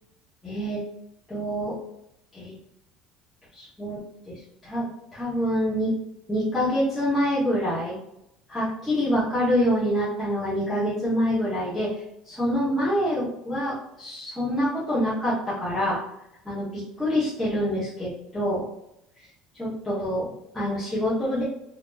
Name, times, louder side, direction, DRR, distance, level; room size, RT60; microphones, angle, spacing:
voice 1, 0.4-0.8 1.3-1.8 2.3-2.5 3.5-4.8 5.1-5.9 6.3-8.0 8.5-12.0 12.2-16.0 16.4-18.6 19.6-21.4, equal, ahead, -13 dB, 1.4 m, -26 dB
4.4 x 2.8 x 2.6 m, 0.80 s
cardioid pair, 165°, 0 cm